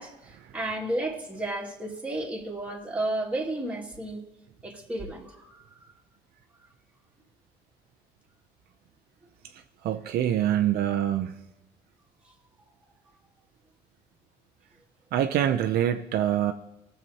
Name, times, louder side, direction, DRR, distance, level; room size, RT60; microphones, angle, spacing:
voice 1, 0.0-4.2 4.6-5.9, right 1 dB, 10° right, -3 dB, 2.1 m, -33 dB
voice 2, 9.8-11.3 15.1-16.5, right 11 dB, 65° right, 6 dB, 0.6 m, -25 dB
18.5 x 6.8 x 2.8 m, 0.98 s
cardioid pair, 110°, 17 cm